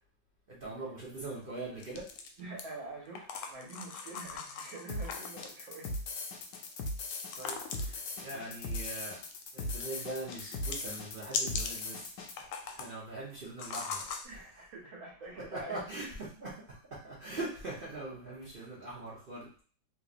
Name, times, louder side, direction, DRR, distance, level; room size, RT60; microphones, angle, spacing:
voice 1, 0.5-2.0 7.4-9.2 9.5-12.0 12.4-14.1 15.5-16.5 17.0-19.5, right 2 dB, 50° right, -6 dB, 0.6 m, -41 dB
sound 1, 1.8-2.6 3.2-5.5 6.4-8.0 8.7-9.4 9.7-11.8 12.2-12.9 13.6-14.3, left 5 dB, 80° left, 1.4 m, -40 dB
voice 2, 2.4-5.9 9.6-9.7 14.2-15.8, right 2 dB, 70° right, -3 dB, 1.8 m, -46 dB
sound 2, 4.9-12.3, left 2 dB, 65° left, 1.0 m, -39 dB
3.7 x 3.0 x 2.5 m, 0.43 s
omnidirectional pair, 2.3 m